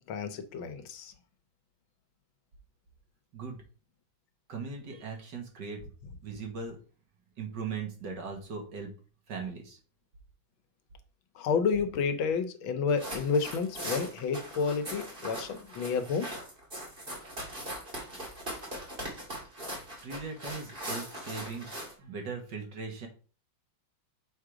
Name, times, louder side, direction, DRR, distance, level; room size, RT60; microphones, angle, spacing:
voice 1, 0.1-1.1 11.4-16.3, left 5 dB, 85° left, 1.6 m, -30 dB
voice 2, 4.5-5.8 6.2-6.8 7.4-8.9 9.3-9.8 20.0-23.1, right 5 dB, 60° right, 2.0 m, -39 dB
sound 1, 12.9-21.9, equal, 30° right, 2.2 m, -40 dB
6.4 x 3.7 x 4.9 m
omnidirectional pair, 2.2 m